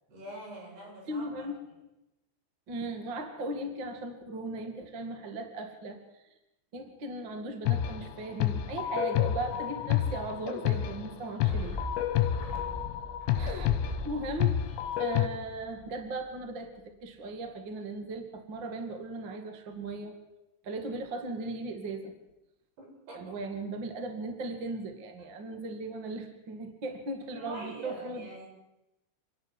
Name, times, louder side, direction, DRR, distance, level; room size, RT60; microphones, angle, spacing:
voice 1, 0.1-1.5 12.4-12.9 22.8-23.3 27.3-28.5, right 1 dB, 55° right, -2 dB, 9.8 m, -45 dB
voice 2, 1.0-1.6 2.7-6.0 6.7-11.8 13.4-13.7 14.0-20.1 20.6-22.1 23.1-28.3, right 2 dB, 40° right, 5 dB, 1.8 m, -37 dB
sound 1, 7.7-15.3, left 11 dB, 75° left, 3.3 m, -29 dB
sound 2, 11.4-16.0 16.3-16.4, left 2 dB, 5° left, 4.1 m, -40 dB
27.5 x 12.0 x 9.7 m, 0.94 s
omnidirectional pair, 5.5 m